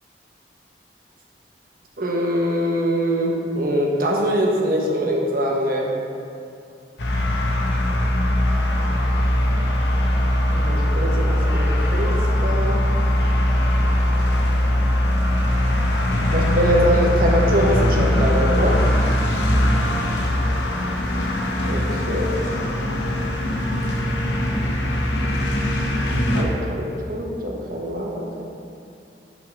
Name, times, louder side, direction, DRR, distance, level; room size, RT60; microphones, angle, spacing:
voice 1, 2.0-5.9 10.6-12.9 16.3-18.8 21.7-22.4 26.3-28.4, equal, 55° right, -1 dB, 0.9 m, -23 dB
sound 1, 7.0-26.4, left 1 dB, 85° left, 0.8 m, -21 dB
6.0 x 3.7 x 5.7 m, 2.5 s
head